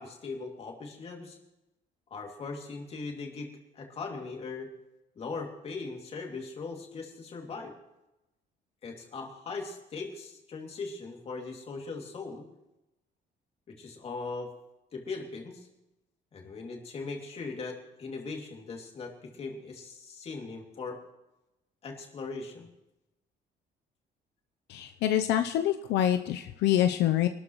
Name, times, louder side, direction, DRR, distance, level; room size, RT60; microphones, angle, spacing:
voice 1, 0.0-1.4 2.1-4.7 5.2-7.7 8.8-12.5 13.7-14.5 14.9-15.7 16.3-21.0 21.8-22.7, left 4 dB, 35° left, 2 dB, 2.5 m, -39 dB
voice 2, 24.7-27.3, left 11 dB, 80° left, 7 dB, 0.7 m, -26 dB
24.5 x 13.0 x 3.1 m, 0.95 s
cardioid pair, 175°, 17 cm